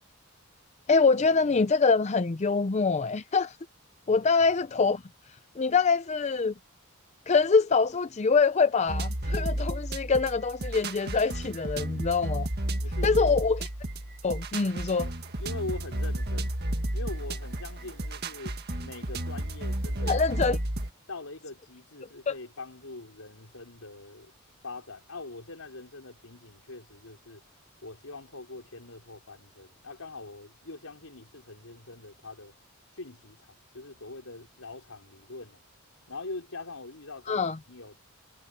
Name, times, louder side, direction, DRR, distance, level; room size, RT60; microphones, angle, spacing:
voice 1, 0.9-3.6 4.1-5.0 5.6-6.5 7.3-12.5 13.0-13.6 14.2-15.1 20.0-20.6 22.3-22.4 37.3-37.6, left 4 dB, 30° left, 0.5 m, -24 dB
sound 1, 8.9-20.9, right 1 dB, 50° right, 1.8 m, -32 dB
voice 2, 12.7-13.4 15.4-16.6 16.9-20.2 21.1-24.3 24.6-27.4 27.8-32.5 32.9-35.6 36.1-38.0, left 2 dB, 80° left, 3.8 m, -43 dB
head